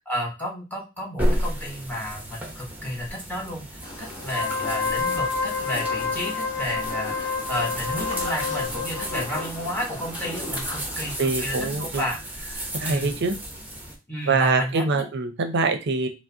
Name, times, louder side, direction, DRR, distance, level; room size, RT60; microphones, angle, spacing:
voice 1, 0.1-3.6 4.0-13.2 14.1-15.1, equal, 10° left, -3 dB, 1.1 m, -32 dB
sound 1, 1.2-14.0, equal, 10° right, 0.7 m, -33 dB
sound 2, 3.8-11.2, left 1 dB, 25° left, 1.6 m, -39 dB
Wind instrument woodwind instrument, 4.2-9.5, left 5 dB, 90° left, 0.7 m, -29 dB
voice 2, 11.2-12.0 12.7-13.3 14.3-16.1, right 4 dB, 55° right, 7 dB, 0.6 m, -24 dB
4.7 x 2.1 x 2.7 m, 0.28 s
head